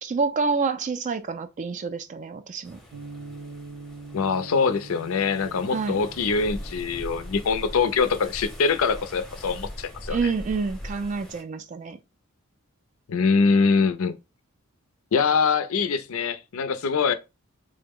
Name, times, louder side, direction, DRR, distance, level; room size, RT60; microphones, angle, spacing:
voice 1, 0.0-2.8 5.7-6.0 10.1-12.0, right 4 dB, 35° right, 0.3 m, -28 dB
sound 1, 2.6-11.4, equal, ahead, 0.6 m, -41 dB
sound 2, 2.9-9.7, right 3 dB, 90° right, 0.6 m, -45 dB
voice 2, 4.1-10.3 13.1-14.2 15.1-17.1, left 5 dB, 65° left, 0.4 m, -23 dB
3.7 x 2.0 x 3.5 m
head